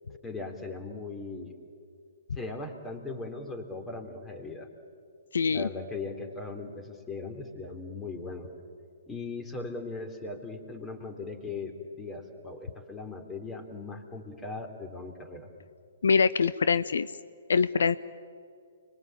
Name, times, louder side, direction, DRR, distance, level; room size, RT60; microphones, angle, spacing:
voice 1, 0.2-1.6 2.4-4.7 5.5-8.5 9.1-15.5, left 3 dB, 10° left, 5 dB, 3.5 m, -39 dB
voice 2, 5.3-5.7 16.0-17.1 17.5-18.0, left 5 dB, 70° left, 15 dB, 0.6 m, -24 dB
30.0 x 22.0 x 9.0 m, 2.3 s
figure-of-eight pair, 125°, 0 cm